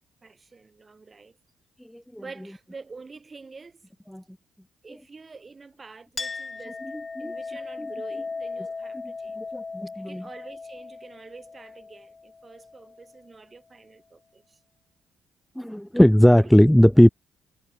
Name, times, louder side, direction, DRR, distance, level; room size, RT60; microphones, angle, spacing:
voice 1, 0.2-1.4 2.2-3.8 4.8-9.4 10.0-14.6 16.4-16.5, right 4 dB, 30° right, 6.2 m, -46 dB
Chink clink, 6.2-13.2, left 4 dB, 30° left, 2.2 m, -37 dB
voice 2, 9.4-10.2 15.6-17.1, equal, 5° left, 0.4 m, -18 dB
cardioid pair, 90°, 0 cm